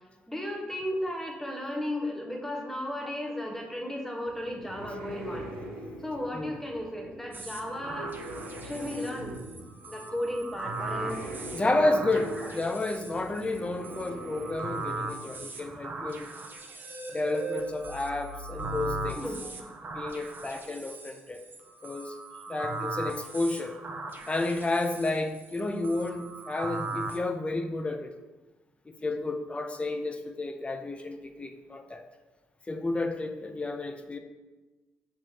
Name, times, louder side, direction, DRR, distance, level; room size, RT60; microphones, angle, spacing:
voice 1, 0.3-5.5 6.0-8.1 8.4-9.4 9.9-11.2 12.4-12.5 12.8-12.9 19.1-19.5, left 1 dB, 5° left, 1 dB, 1.0 m, -35 dB
sound 1, 4.2-16.0, right 1 dB, 80° right, 1.1 m, -43 dB
sound 2, 7.3-27.2, right 3 dB, 40° right, 0.6 m, -39 dB
voice 2, 11.5-16.3 17.1-19.2 19.9-21.4 21.8-22.2 22.5-23.8 24.3-28.1 29.0-32.0 32.7-34.2, left 2 dB, 20° left, 7 dB, 0.5 m, -31 dB
5.7 x 3.0 x 2.8 m, 1.2 s
hypercardioid pair, 50°, 5 cm